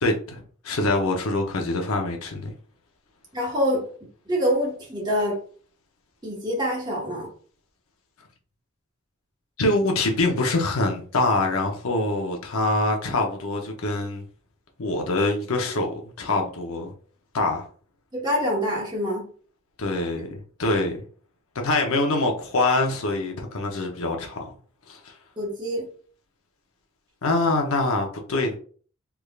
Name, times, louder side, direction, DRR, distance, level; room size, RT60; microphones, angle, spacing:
voice 1, 0.0-2.5 9.6-14.2 14.8-16.9 17.3-17.7 19.8-20.9 21.5-24.5 24.9-25.1 27.2-28.6, left 2 dB, 80° left, 0.7 m, -24 dB
voice 2, 3.3-3.9 4.3-5.4 6.2-7.3 18.1-19.3 25.4-25.9, equal, 20° right, 1.2 m, -25 dB
3.5 x 3.2 x 2.3 m
head